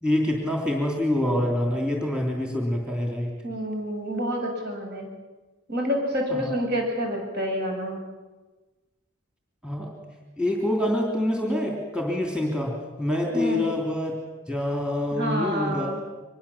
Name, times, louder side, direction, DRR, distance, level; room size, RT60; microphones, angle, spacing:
voice 1, 0.0-3.3 6.4-6.5 9.6-9.9 10.4-14.1 14.5-15.9, left 1 dB, 5° right, 0 dB, 3.2 m, -26 dB
voice 2, 3.4-5.1 5.7-8.0 13.3-13.6 15.1-16.0, equal, 50° right, 1 dB, 7.2 m, -28 dB
24.5 x 22.0 x 7.3 m, 1.2 s
head